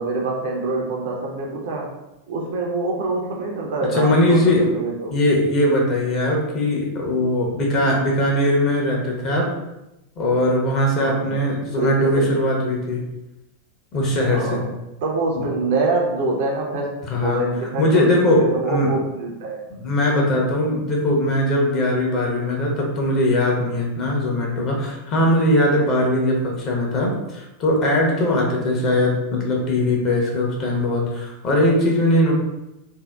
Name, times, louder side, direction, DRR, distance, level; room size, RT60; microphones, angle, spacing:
voice 1, 0.0-2.0 2.3-5.1 11.0-11.4 11.7-12.3 14.3-14.6 15.0-19.6, right 2 dB, 55° right, -1 dB, 0.5 m, -25 dB
voice 2, 3.9-4.7 5.1-9.5 10.2-13.0 13.9-14.6 15.3-15.5 17.0-17.4 17.8-18.9 19.7-32.3, left 1 dB, 35° left, -1 dB, 0.7 m, -20 dB
2.6 x 2.1 x 2.2 m, 0.94 s
figure-of-eight pair, 90°, 0 cm